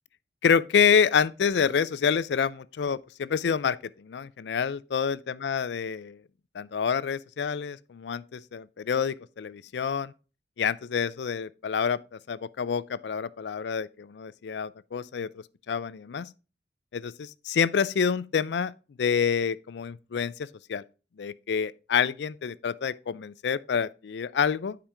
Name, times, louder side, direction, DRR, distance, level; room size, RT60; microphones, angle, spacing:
voice 1, 0.4-6.2 6.5-10.1 10.6-12.0 12.3-16.3 16.9-18.7 19.0-20.8 21.2-24.8, left 6 dB, 70° left, 0.4 m, -27 dB
9.9 x 5.1 x 3.4 m
head